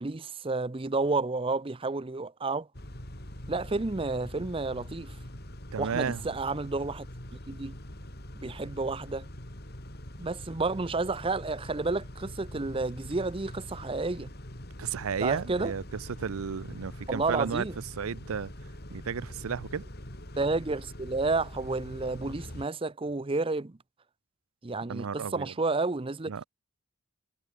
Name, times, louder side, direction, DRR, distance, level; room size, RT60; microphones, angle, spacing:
voice 1, 0.0-2.7 3.5-5.2 5.8-7.1 7.5-7.8 8.3-9.3 10.2-14.3 15.2-15.7 17.1-17.7 20.3-23.8 24.6-26.5, right 3 dB, 25° right, 0.6 m, -31 dB
Car / Idling / Accelerating revving vroom, 2.7-22.7, left 1 dB, 50° left, 4.2 m, -43 dB
voice 2, 5.7-6.2 14.8-17.7 18.0-18.5 18.9-19.9 24.9-25.5 26.3-26.4, right 6 dB, 85° right, 0.5 m, -33 dB
head